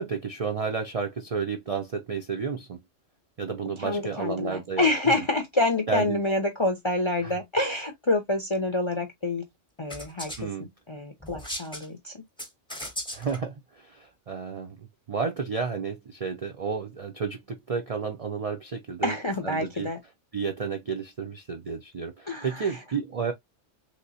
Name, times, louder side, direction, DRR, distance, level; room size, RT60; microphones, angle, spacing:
voice 1, 0.0-2.8 3.4-5.2 5.9-6.2 7.2-7.3 10.4-10.7 13.1-19.1 19.4-19.9 20.3-23.3, right 5 dB, 55° right, 0.4 m, -32 dB
voice 2, 3.8-9.5 9.8-10.3 10.6-12.2 19.0-20.0 22.3-22.8, left 2 dB, 40° left, 0.4 m, -27 dB
sound 1, 9.9-10.4 11.2-11.9 12.4-13.4, left 1 dB, 5° left, 0.7 m, -37 dB
3.3 x 2.9 x 2.7 m
omnidirectional pair, 1.3 m